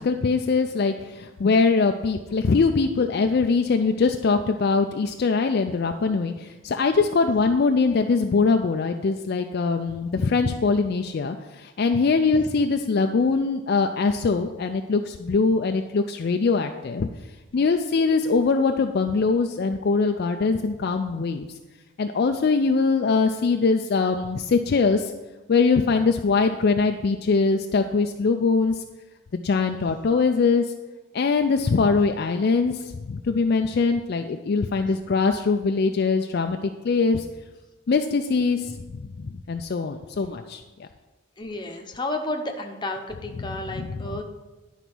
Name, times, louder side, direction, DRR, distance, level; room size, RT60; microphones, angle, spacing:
voice 1, 0.0-17.1 17.5-21.4 22.0-25.1 25.5-28.8 29.4-30.7 31.1-36.6 36.8-37.3 37.9-40.9 43.7-43.9, left 4 dB, 50° left, 5 dB, 0.4 m, -22 dB
voice 2, 41.4-44.2, left 2 dB, 20° left, 3 dB, 0.8 m, -32 dB
11.0 x 4.0 x 6.0 m, 1.2 s
head